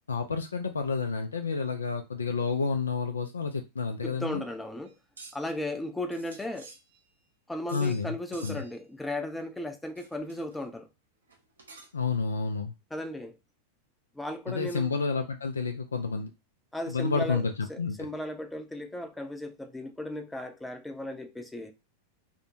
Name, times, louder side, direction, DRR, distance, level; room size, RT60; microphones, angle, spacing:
voice 1, 0.1-4.4 7.7-8.2 8.4-8.6 11.9-12.7 14.5-16.3 16.9-18.1, left 4 dB, 75° left, 0.3 m, -30 dB
voice 2, 4.0-4.9 5.3-6.7 7.5-10.9 12.9-13.4 14.2-14.9 16.7-17.4 17.7-21.7, left 1 dB, 5° left, 0.4 m, -36 dB
sound 1, 4.9-5.6 6.1-7.2 7.7-8.1 8.3-8.8 10.0-10.6 11.3-12.1, right 3 dB, 70° right, 0.5 m, -50 dB
2.5 x 2.1 x 2.7 m
figure-of-eight pair, 90°, 0 cm